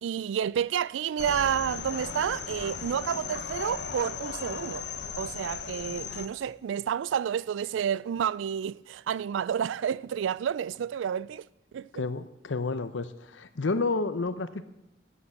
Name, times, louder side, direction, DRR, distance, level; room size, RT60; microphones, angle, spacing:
voice 1, 0.0-4.8 5.2-11.5 11.7-11.9, right 8 dB, 90° right, 0.3 m, -30 dB
sound 1, 1.2-6.3, left 5 dB, 65° left, 1.0 m, -37 dB
voice 2, 11.9-14.6, left 3 dB, 90° left, 0.8 m, -30 dB
12.5 x 8.6 x 6.5 m
head